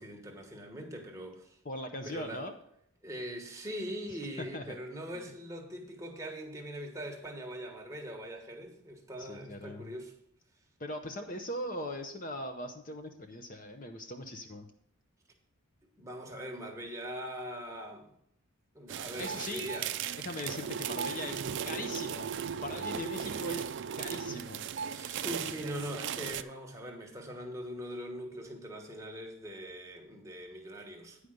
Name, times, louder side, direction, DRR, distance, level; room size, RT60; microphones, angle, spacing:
voice 1, 0.0-1.6 2.0-2.5 3.0-10.1 16.0-18.1 18.7-19.9 24.9-31.2, equal, 15° right, 1.3 m, -42 dB
voice 2, 1.6-2.5 4.5-4.8 5.1-5.3 9.2-9.9 10.8-14.7 19.2-19.7 20.2-22.3 22.6-23.7 24.0-24.6, left 1 dB, 35° left, 0.7 m, -40 dB
sound 1, 18.9-26.4, right 8 dB, 55° right, 0.4 m, -37 dB
9.6 x 5.0 x 6.5 m
head